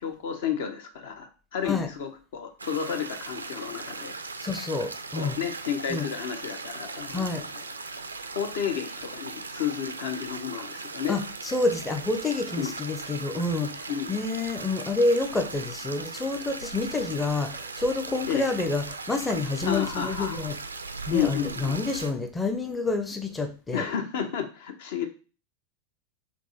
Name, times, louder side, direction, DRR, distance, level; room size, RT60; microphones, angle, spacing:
voice 1, 0.0-4.1 5.1-7.3 7.5-7.6 8.3-11.2 12.6-12.7 13.9-14.2 18.3-18.5 19.6-20.5 21.1-21.8 23.7-25.1, left 8 dB, 55° left, 6 dB, 0.6 m, -31 dB
sound 1, 2.6-22.1, right 4 dB, 80° right, 0.3 m, -38 dB
voice 2, 4.4-5.4 5.9-6.1 7.1-7.4 11.1-20.6 21.1-23.9, left 3 dB, 10° left, 4 dB, 0.5 m, -28 dB
3.5 x 3.1 x 4.0 m, 0.36 s
figure-of-eight pair, 90°, 0 cm